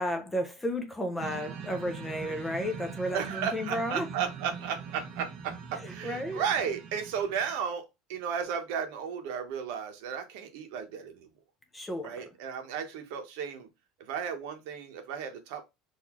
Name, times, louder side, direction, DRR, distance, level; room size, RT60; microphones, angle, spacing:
voice 1, 0.0-4.1 5.7-6.4 11.7-12.1, equal, 5° left, 0.5 m, -33 dB
sound 1, 1.2-7.6, right 6 dB, 30° right, 0.7 m, -42 dB
voice 2, 3.1-11.3 12.0-13.7 14.0-15.7, right 7 dB, 60° right, 1.0 m, -34 dB
4.0 x 2.6 x 3.0 m
cardioid pair, 175°, 0 cm